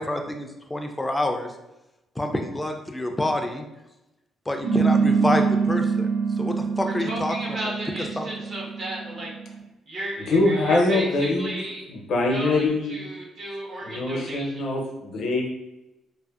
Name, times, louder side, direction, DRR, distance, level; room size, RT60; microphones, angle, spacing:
voice 1, 0.0-1.5 2.2-3.6 4.5-6.1 6.4-7.4 7.6-7.7 8.2-8.3, left 1 dB, 15° left, 4 dB, 0.4 m, -27 dB
sound 1, 4.6-9.6, right 5 dB, 80° right, 1.2 m, -24 dB
voice 2, 6.8-9.3 9.9-11.9 12.3-14.5, right 1 dB, 60° right, -3 dB, 1.0 m, -34 dB
voice 3, 10.2-13.1 13.8-15.5, left 2 dB, 70° left, 0 dB, 0.6 m, -24 dB
2.5 x 2.5 x 2.4 m, 0.95 s
cardioid pair, 90°, 0 cm